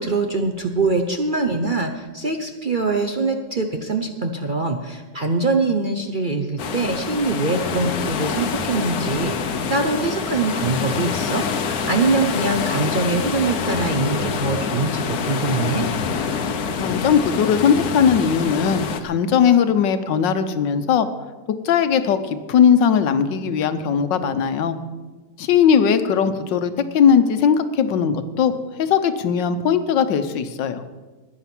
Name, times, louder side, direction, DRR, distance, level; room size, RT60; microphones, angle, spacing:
voice 1, 0.0-15.9, right 3 dB, 45° right, 5 dB, 0.7 m, -23 dB
sound 1, 6.6-19.0, left 6 dB, 60° left, 1.3 m, -26 dB
voice 2, 16.8-21.1 21.6-24.8 25.4-30.8, left 7 dB, 90° left, 10 dB, 1.6 m, -19 dB
14.5 x 10.5 x 6.0 m, 1.3 s
omnidirectional pair, 1.9 m